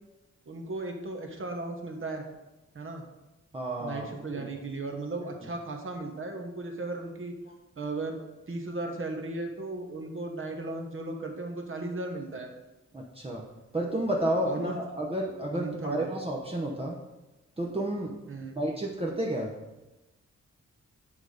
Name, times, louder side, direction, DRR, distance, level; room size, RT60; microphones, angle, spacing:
voice 1, 0.5-2.3 2.7-3.0 3.8-7.3 7.8-8.2 8.5-12.5 14.4-14.7 15.5-16.1 18.3-18.6, right 2 dB, 45° right, 3 dB, 1.2 m, -36 dB
voice 2, 3.5-4.5 12.9-13.5 13.7-17.0 17.6-18.2 18.6-19.5, right 1 dB, 20° right, -2 dB, 0.8 m, -31 dB
9.0 x 4.0 x 4.9 m, 1.0 s
wide cardioid pair, 115°, 29 cm